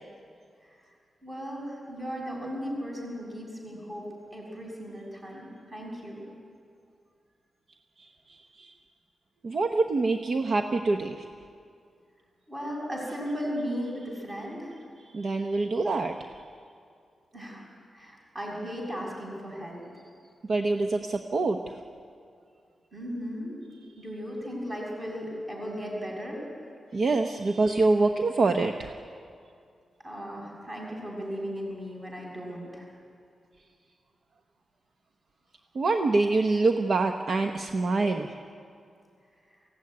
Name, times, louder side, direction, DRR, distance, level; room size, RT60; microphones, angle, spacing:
voice 1, 1.2-6.2 12.5-14.8 17.3-17.6 17.9-19.8 22.9-23.6 24.0-26.5 30.0-32.9, equal, 20° right, -2 dB, 6.7 m, -36 dB
voice 2, 8.0-8.7 9.4-11.2 15.1-16.3 20.4-21.8 26.9-28.9 35.7-38.3, right 3 dB, 50° right, 5 dB, 0.9 m, -26 dB
23.0 x 16.0 x 9.7 m, 2.3 s
wide cardioid pair, 170°, 0 cm